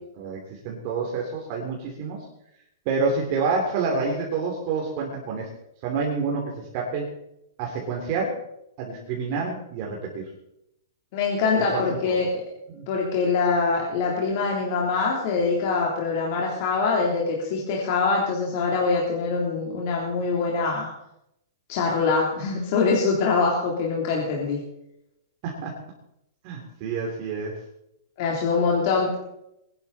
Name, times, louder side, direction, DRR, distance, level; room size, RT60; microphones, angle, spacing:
voice 1, 0.2-2.2 2.8-5.5 5.8-7.1 7.6-8.3 8.8-10.3 11.5-12.2 12.7-12.8 25.4-25.7 26.4-27.6, right 4 dB, 40° right, -1 dB, 3.0 m, -28 dB
voice 2, 11.1-12.4 12.9-20.9 21.7-24.6 28.2-29.2, left 4 dB, 45° left, -2 dB, 3.4 m, -24 dB
20.5 x 11.5 x 4.2 m, 0.81 s
hypercardioid pair, 150°, 2 cm